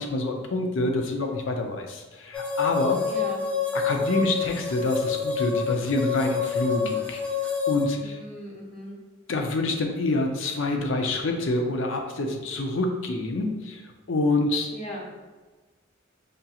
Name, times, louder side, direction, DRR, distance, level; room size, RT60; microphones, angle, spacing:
voice 1, 0.0-3.0 3.7-7.2 7.7-8.2 9.3-13.8 14.1-14.7, left 2 dB, 70° left, 3 dB, 0.5 m, -27 dB
sound 1, 2.3-7.9, left 6 dB, 5° left, 0.5 m, -27 dB
voice 2, 3.0-3.5 8.0-9.0 14.7-15.0, equal, 30° left, -4 dB, 1.0 m, -38 dB
5.0 x 2.8 x 2.3 m, 1.3 s
head